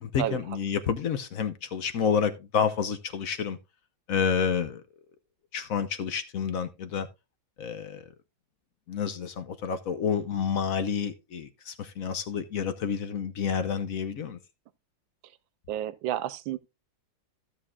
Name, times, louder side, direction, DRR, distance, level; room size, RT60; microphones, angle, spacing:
voice 1, 0.0-3.6 4.1-4.8 5.5-7.1 7.6-8.1 8.9-14.4, left 7 dB, 55° left, 1.0 m, -29 dB
voice 2, 15.7-16.6, right 12 dB, 80° right, 1.4 m, -30 dB
15.0 x 7.0 x 2.3 m
omnidirectional pair, 2.1 m